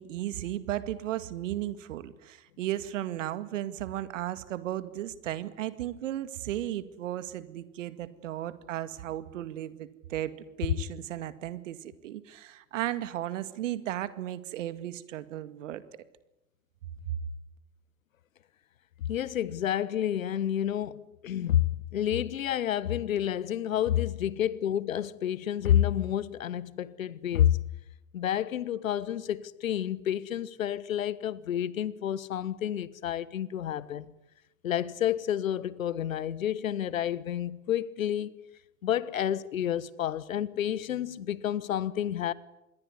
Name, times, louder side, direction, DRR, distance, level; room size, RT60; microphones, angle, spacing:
voice 1, 0.0-15.8 17.1-17.2, right 13 dB, 65° right, 2.1 m, -35 dB
voice 2, 19.1-27.6 28.1-34.1 34.6-38.4 38.8-42.3, left 10 dB, 75° left, 1.3 m, -29 dB
26.5 x 22.0 x 9.8 m
figure-of-eight pair, 85°, 41 cm